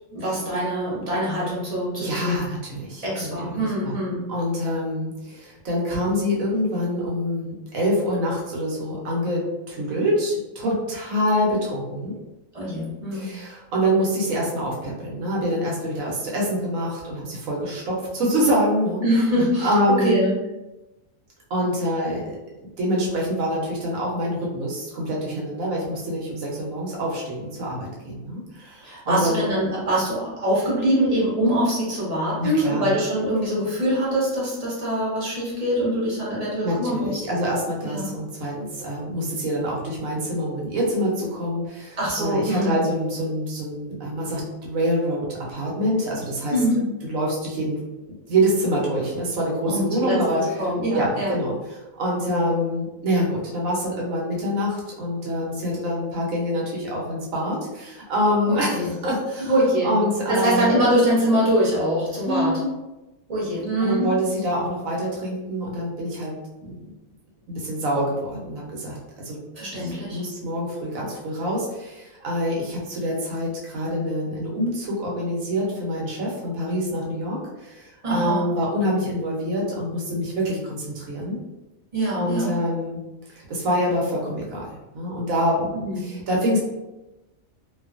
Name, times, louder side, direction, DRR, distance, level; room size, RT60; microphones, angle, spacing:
voice 1, 0.1-2.4 3.0-4.2 12.5-13.3 19.0-20.3 28.8-37.2 37.8-38.1 42.0-42.8 46.5-46.9 49.7-50.2 50.6-51.3 58.4-58.9 59.5-59.9 60.3-62.6 63.3-64.1 69.5-70.2 78.0-78.4 81.9-82.5 85.7-86.0, equal, 30° right, -6 dB, 0.9 m, -23 dB
voice 2, 2.0-3.9 4.3-12.1 13.1-19.0 19.6-20.3 21.5-22.4 22.8-29.5 32.4-32.9 36.6-46.6 47.1-47.8 48.3-50.4 50.9-59.5 59.8-60.7 62.2-62.7 63.8-66.3 66.6-66.8 67.5-69.4 69.8-81.4 82.1-83.0 83.3-84.7 84.9-86.6, equal, 70° right, -3 dB, 1.1 m, -26 dB
2.6 x 2.3 x 2.4 m, 1.0 s
omnidirectional pair, 1.5 m